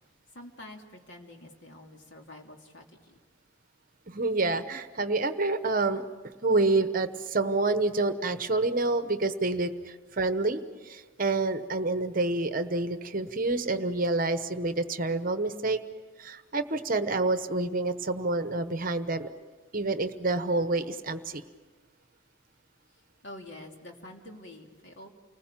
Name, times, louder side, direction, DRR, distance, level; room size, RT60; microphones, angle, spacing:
voice 1, 0.3-3.2 23.2-25.1, left 1 dB, 55° left, 1 dB, 3.0 m, -47 dB
voice 2, 4.1-6.0 6.4-15.8 16.2-19.3 19.7-21.4, right 2 dB, 40° right, 10 dB, 1.0 m, -28 dB
29.5 x 20.5 x 7.4 m, 1.4 s
head